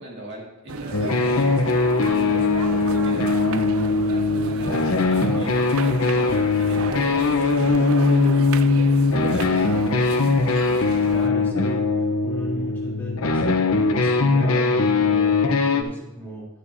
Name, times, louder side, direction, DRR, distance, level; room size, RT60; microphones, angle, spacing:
voice 1, 0.0-1.6 2.0-3.5 3.8-5.9 6.5-9.6, right 1 dB, 55° right, -3 dB, 2.3 m, -39 dB
sound 1, 0.7-11.3, right 5 dB, 80° right, 0.4 m, -34 dB
sound 2, 0.9-15.8, left 3 dB, 85° left, 0.9 m, -20 dB
voice 2, 11.0-11.8 12.2-16.5, equal, 10° left, -6 dB, 3.2 m, -35 dB
12.0 x 11.0 x 2.7 m, 0.99 s
head